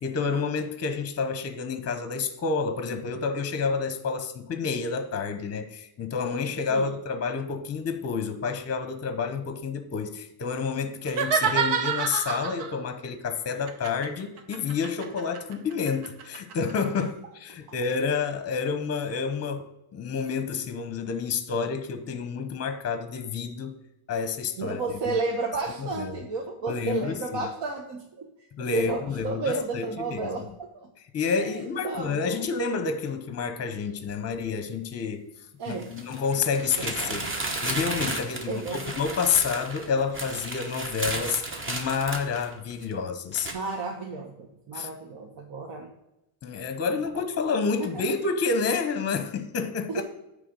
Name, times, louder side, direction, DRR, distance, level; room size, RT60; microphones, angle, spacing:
voice 1, 0.0-23.7 24.1-24.8 25.1-25.2 25.8-26.2 26.7-27.5 28.6-30.4 31.1-35.2 35.7-37.2 37.6-41.4 41.7-43.5 44.7-44.9 46.4-50.0, left 5 dB, 30° left, 0.8 m, -29 dB
sound 1, 11.0-12.8 13.7-16.7, right 7 dB, 85° right, 1.0 m, -28 dB
voice 2, 24.6-28.3 28.6-30.9 31.4-32.5 35.6-35.9 36.8-37.2 38.5-38.8 43.5-45.9 46.9-47.0 47.8-48.0 49.9-50.0, right 3 dB, 60° right, 1.1 m, -32 dB
sound 2, 34.1-34.2 35.7-42.9 43.3-43.5, right 2 dB, 25° right, 1.0 m, -33 dB
9.2 x 3.3 x 6.5 m
cardioid pair, 145°, 49 cm